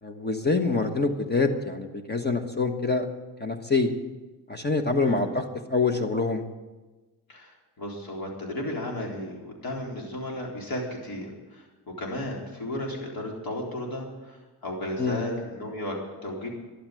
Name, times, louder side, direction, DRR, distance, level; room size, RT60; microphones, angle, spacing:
voice 1, 0.0-3.1 3.4-3.9 4.5-5.4 5.7-6.4 15.0-15.2, left 3 dB, 25° left, 5 dB, 1.3 m, -25 dB
voice 2, 7.3-11.7 12.0-16.5, left 1 dB, 60° left, -1 dB, 4.1 m, -34 dB
12.5 x 11.5 x 7.7 m, 1.2 s
cardioid pair, 110°, 40 cm